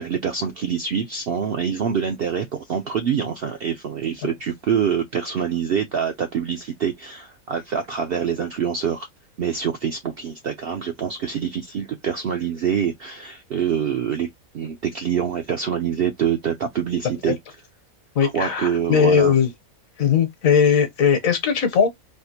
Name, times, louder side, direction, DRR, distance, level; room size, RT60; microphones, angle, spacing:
voice 1, 0.0-9.1 9.4-14.3 14.5-17.4 18.2-19.3, right 7 dB, 65° right, 0.6 m, -25 dB
voice 2, 18.1-19.5 20.0-21.9, left 7 dB, 70° left, 1.3 m, -18 dB
3.5 x 2.5 x 2.7 m
omnidirectional pair, 1.5 m